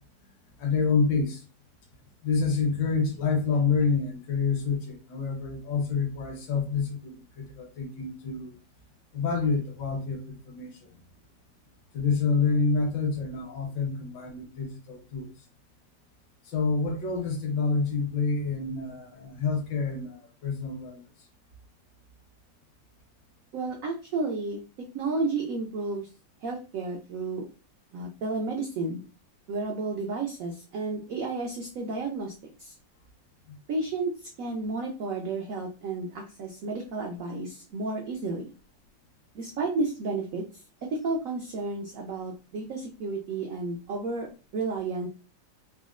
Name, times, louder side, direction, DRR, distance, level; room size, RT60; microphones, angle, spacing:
voice 1, 0.6-1.4 2.2-8.5 9.1-10.9 11.9-15.3 16.4-21.0 33.5-33.6, left 4 dB, 70° left, 1 dB, 1.5 m, -28 dB
voice 2, 23.5-24.6 24.9-26.1 26.4-27.4 27.9-29.0 29.5-32.3 32.6-32.7 33.7-34.1 34.4-38.5 39.3-40.4 40.8-44.3 44.5-45.1, right 3 dB, 85° right, 1 dB, 0.7 m, -32 dB
3.9 x 2.0 x 2.4 m, 0.34 s
omnidirectional pair, 2.0 m